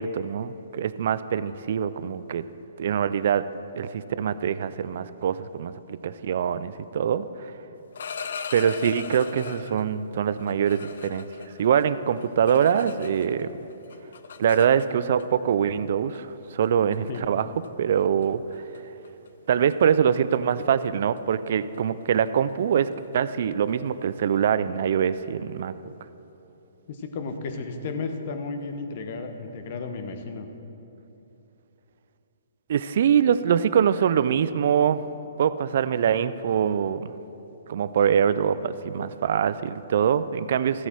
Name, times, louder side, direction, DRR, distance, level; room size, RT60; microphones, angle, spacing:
voice 1, 0.0-2.5 2.8-3.5 3.8-7.5 8.5-11.3 11.6-13.6 14.4-17.5 17.8-18.6 19.5-25.9 32.7-35.0 35.4-37.1 37.7-40.9, right 8 dB, 60° right, 15 dB, 0.4 m, -24 dB
sound 1, 7.8-9.9 10.4-13.4 13.7-15.2 16.1-16.3 16.6-17.0 17.4-17.7 18.0-18.2 18.5-18.8 19.0-24.4, left 6 dB, 70° left, 0.6 m, -40 dB
voice 2, 26.9-30.5, left 4 dB, 50° left, 6 dB, 1.1 m, -33 dB
14.0 x 8.1 x 4.6 m, 3.0 s
hypercardioid pair, 140°, 0 cm